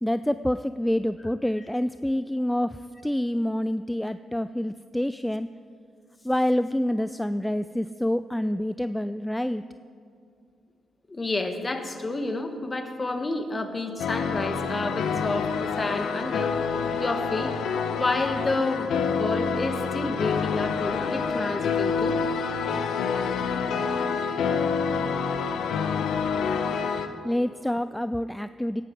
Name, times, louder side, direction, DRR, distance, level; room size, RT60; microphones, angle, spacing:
voice 1, 0.0-5.5 6.2-9.6 27.2-28.8, left 1 dB, 5° left, 12 dB, 0.4 m, -27 dB
voice 2, 11.1-16.6 17.0-17.6 17.9-22.2, left 2 dB, 30° left, 6 dB, 1.8 m, -29 dB
sound 1, 14.0-27.1, left 6 dB, 70° left, 0.9 m, -27 dB
18.5 x 11.0 x 4.9 m, 2.3 s
hypercardioid pair, 45°, 0 cm